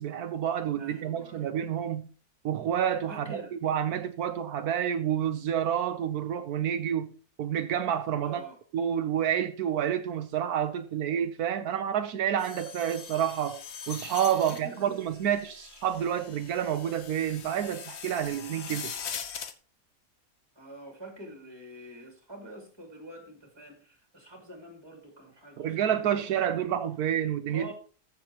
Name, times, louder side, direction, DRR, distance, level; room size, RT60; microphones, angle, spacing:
voice 1, 0.0-2.1 2.4-7.1 7.4-8.4 8.7-13.6 13.9-18.9 25.6-27.7, right 9 dB, 85° right, 1.3 m, -29 dB
voice 2, 0.8-1.5 3.1-3.5 8.2-8.6 14.3-15.0 20.5-26.6 27.5-27.7, right 1 dB, 15° right, 2.9 m, -46 dB
sound 1, 12.4-19.5, left 7 dB, 50° left, 1.0 m, -42 dB
14.5 x 7.5 x 3.0 m
omnidirectional pair, 1.6 m